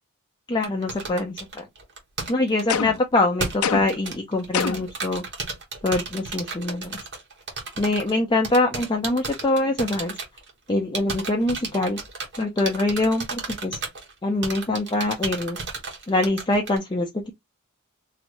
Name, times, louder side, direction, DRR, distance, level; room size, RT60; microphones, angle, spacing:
voice 1, 0.5-1.7 2.3-5.2 5.8-7.0 7.8-10.2 10.7-12.0 12.4-13.8 14.2-15.6 16.1-17.3, left 2 dB, 20° left, 0.5 m, -24 dB
sound 1, 0.6-3.0 3.4-8.1 8.4-10.7 10.9-14.1 14.4-16.8, right 4 dB, 55° right, 1.5 m, -33 dB
sound 2, 2.7-3.1 3.6-4.1 4.5-5.0, left 7 dB, 70° left, 0.5 m, -26 dB
3.2 x 3.0 x 2.5 m
head